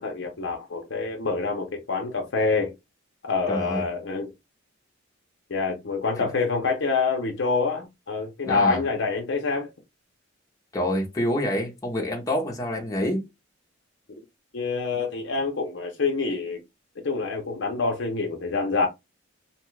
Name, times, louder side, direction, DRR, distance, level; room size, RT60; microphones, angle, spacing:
voice 1, 0.0-2.7 3.2-4.3 5.5-9.7 14.5-16.6 17.0-18.9, left 4 dB, 60° left, 0.6 m, -26 dB
voice 2, 3.5-3.8 6.2-6.3 8.4-8.8 10.7-13.2, left 1 dB, 15° left, 0.7 m, -27 dB
2.9 x 2.3 x 3.1 m
head